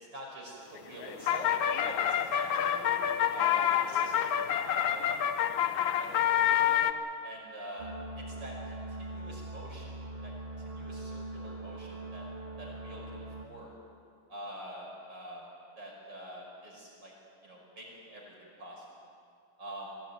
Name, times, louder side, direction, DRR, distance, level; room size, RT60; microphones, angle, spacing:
voice 1, 0.1-2.9 3.3-5.2 5.6-6.1 6.4-6.9 7.2-9.9 10.2-10.3 10.6-12.3 12.6-13.7 14.3-15.4 15.8-17.1 17.4-18.9 19.6-19.9, right 1 dB, 55° right, -3 dB, 6.1 m, -45 dB
sound 1, 0.8-6.9, left 10 dB, 70° left, 1.6 m, -28 dB
sound 2, 7.8-13.4, right 2 dB, 30° right, 1.8 m, -42 dB
21.5 x 17.0 x 9.4 m, 2.3 s
omnidirectional pair, 2.3 m